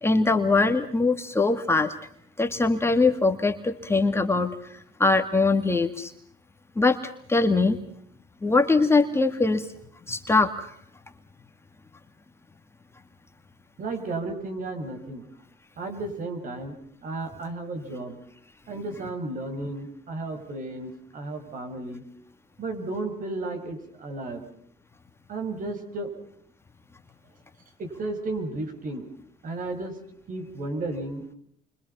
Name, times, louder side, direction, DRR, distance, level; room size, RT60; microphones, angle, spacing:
voice 1, 0.0-1.9 2.4-4.5 5.0-6.1 6.8-7.0 7.3-7.8 8.4-9.6 10.1-10.7, left 3 dB, 15° left, 5 dB, 2.0 m, -22 dB
voice 2, 13.8-15.3 15.8-16.7 17.0-18.2 18.7-22.0 22.6-24.4 25.3-26.1 27.8-29.1 29.4-30.0 30.3-31.2, right 2 dB, 50° right, 8 dB, 6.2 m, -33 dB
29.5 x 24.5 x 5.6 m, 0.63 s
cardioid pair, 110°, 17 cm